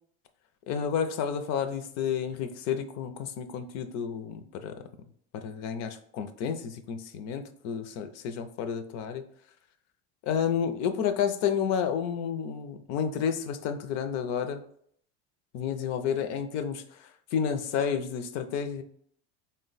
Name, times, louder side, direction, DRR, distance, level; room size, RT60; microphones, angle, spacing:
voice 1, 0.7-4.8 5.3-9.2 10.3-14.6 15.5-16.8 17.3-18.8, left 7 dB, 55° left, 9 dB, 0.5 m, -30 dB
4.0 x 2.1 x 3.9 m, 0.64 s
cardioid pair, 140°, 32 cm